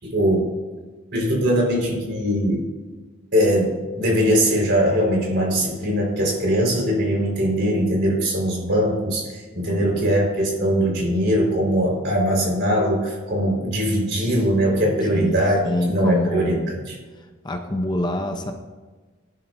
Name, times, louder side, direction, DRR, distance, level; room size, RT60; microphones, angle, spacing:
voice 1, 0.0-0.4 1.1-2.7 3.3-3.7 4.0-15.6 15.9-16.5, equal, 50° right, -1 dB, 4.6 m, -21 dB
voice 2, 9.7-10.1 15.1-16.7 17.2-18.5, left 1 dB, 20° left, 4 dB, 0.7 m, -27 dB
19.0 x 11.0 x 2.7 m, 1.3 s
head